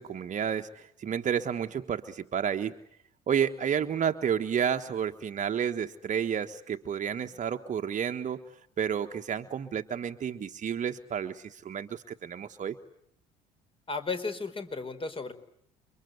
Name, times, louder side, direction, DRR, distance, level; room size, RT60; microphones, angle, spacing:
voice 1, 0.0-2.7 3.3-8.4 8.8-12.8, right 8 dB, 40° right, 6 dB, 1.4 m, -31 dB
voice 2, 13.9-15.3, left 4 dB, 30° left, 9 dB, 4.6 m, -34 dB
29.5 x 25.0 x 8.0 m, 0.72 s
hypercardioid pair, 60°, 19 cm